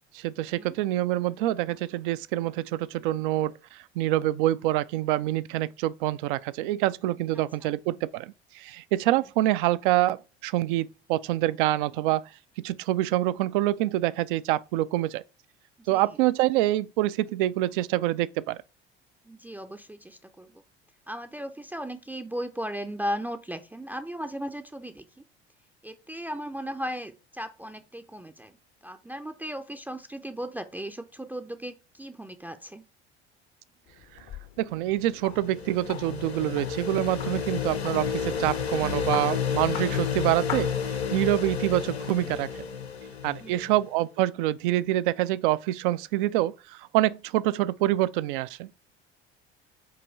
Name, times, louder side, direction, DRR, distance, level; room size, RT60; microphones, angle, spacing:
voice 1, 0.1-12.3 12.6-15.2 15.9-18.6 34.6-40.7 41.1-42.7 43.2-48.7, right 15 dB, 55° right, 0.4 m, -26 dB
voice 2, 15.8-16.2 19.2-20.6 21.1-25.2 25.8-28.6 28.8-32.8 43.4-43.7, equal, 5° right, 0.5 m, -36 dB
sound 1, 33.9-41.4, left 11 dB, 45° left, 0.8 m, -43 dB
sound 2, 35.0-43.8, left 6 dB, 80° left, 0.7 m, -31 dB
7.9 x 3.0 x 4.0 m
figure-of-eight pair, 65°, 31 cm